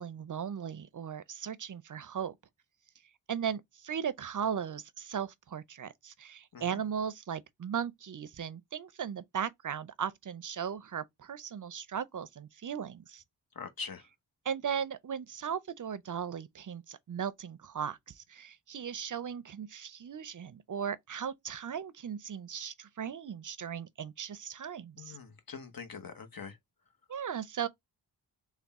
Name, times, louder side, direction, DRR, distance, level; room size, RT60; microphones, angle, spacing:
voice 1, 0.0-2.4 3.3-13.2 14.4-25.2 27.1-27.7, right 8 dB, 45° right, 0.5 m, -37 dB
voice 2, 13.6-14.0 25.0-26.6, left 5 dB, 55° left, 1.0 m, -43 dB
3.5 x 2.3 x 4.0 m
cardioid pair, 45°, 43 cm